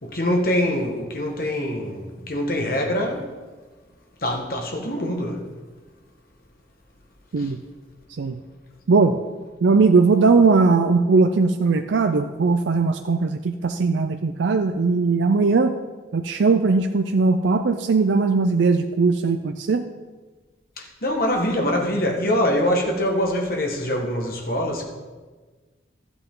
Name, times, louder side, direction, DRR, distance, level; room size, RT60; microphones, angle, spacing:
voice 1, 0.0-3.3 4.2-5.4 7.4-7.5 20.8-24.8, left 1 dB, 50° left, 1.6 m, -24 dB
voice 2, 9.6-15.7 16.1-19.8, right 4 dB, 85° right, 0.4 m, -19 dB
13.0 x 8.2 x 3.8 m
head